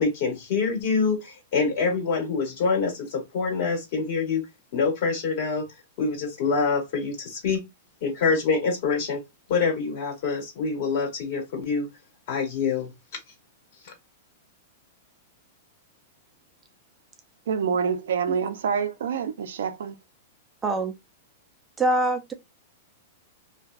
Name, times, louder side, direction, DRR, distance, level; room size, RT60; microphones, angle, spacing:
voice 1, 0.0-4.4 4.7-5.7 6.0-7.6 8.0-9.2 9.5-11.9 12.3-12.9 13.8-13.9, left 4 dB, 55° left, 1.5 m, -25 dB
voice 2, 17.5-19.9, right 6 dB, 80° right, 0.4 m, -26 dB
voice 3, 20.6-20.9 21.8-22.3, right 2 dB, 15° right, 0.4 m, -23 dB
2.7 x 2.2 x 2.3 m
hypercardioid pair, 140°, 0 cm